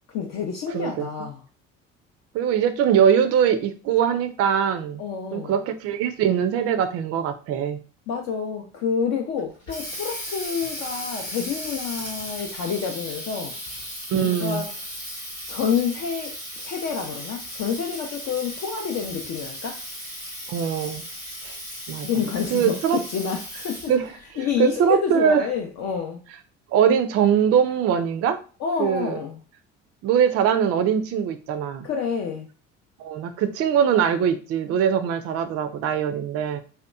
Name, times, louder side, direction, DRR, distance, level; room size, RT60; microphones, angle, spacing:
voice 1, 0.1-1.4 5.0-5.6 8.1-13.5 14.1-14.7 15.5-16.3 16.6-19.8 22.0-23.9 24.4-26.2 28.6-29.4 31.8-32.5, left 7 dB, 45° left, 2 dB, 0.5 m, -28 dB
voice 2, 0.7-1.1 2.3-5.0 5.3-7.8 14.1-14.6 20.5-21.0 21.4-21.5 21.9-22.1 22.5-23.0 23.9-25.4 26.7-28.4 28.8-29.2 30.0-31.9 33.0-36.6, right 8 dB, 40° right, 10 dB, 0.4 m, -22 dB
Water tap faucet, 9.4-24.1, equal, 90° left, 1.1 m, -36 dB
2.8 x 2.1 x 2.3 m, 0.37 s
figure-of-eight pair, 55°, 38 cm